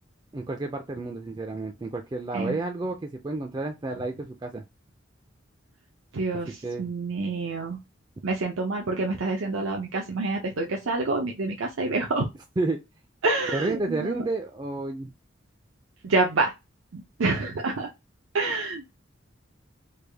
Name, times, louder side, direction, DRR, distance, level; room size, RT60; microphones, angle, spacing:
voice 1, 0.3-4.6 6.6-6.9 12.6-12.8 13.5-15.1, right 2 dB, 20° right, 4 dB, 0.4 m, -31 dB
voice 2, 6.1-7.8 8.2-12.3 13.2-14.2 16.0-16.5 16.9-17.9 18.3-18.9, right 3 dB, 85° right, 0 dB, 0.6 m, -27 dB
3.4 x 2.2 x 3.3 m, 0.22 s
head